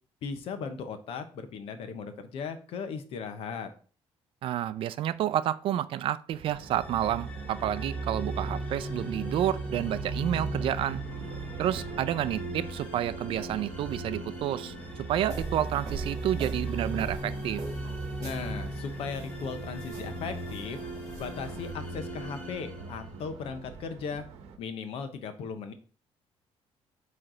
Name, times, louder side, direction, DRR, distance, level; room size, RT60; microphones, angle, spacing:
voice 1, 0.2-3.7 18.2-20.8 21.2-24.2 24.6-25.7, left 5 dB, 65° left, 9 dB, 0.9 m, -37 dB
voice 2, 4.4-11.0 11.6-14.7 15.1-17.6, right 11 dB, 60° right, 15 dB, 0.4 m, -30 dB
sound 1, 6.3-24.6, right 7 dB, 75° right, 0.9 m, -46 dB
sound 2, 6.6-23.7, right 1 dB, 15° left, 1.3 m, -37 dB
sound 3, 15.2-21.7, right 3 dB, 30° right, 1.6 m, -44 dB
8.9 x 3.3 x 3.9 m, 0.41 s
cardioid pair, 170°, 11 cm